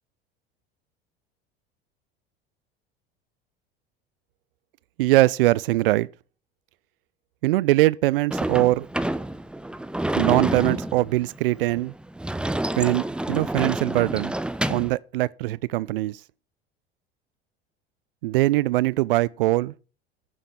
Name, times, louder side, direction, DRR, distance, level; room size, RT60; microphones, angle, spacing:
voice 1, 5.0-6.1 7.4-8.9 10.2-11.9 12.8-14.3 14.7-16.2 18.2-19.7, right 18 dB, 65° right, 0.5 m, -22 dB
Sliding door / Slam, 8.3-15.0, right 1 dB, 5° right, 0.6 m, -28 dB
14.5 x 7.4 x 5.4 m
figure-of-eight pair, 70°, 30 cm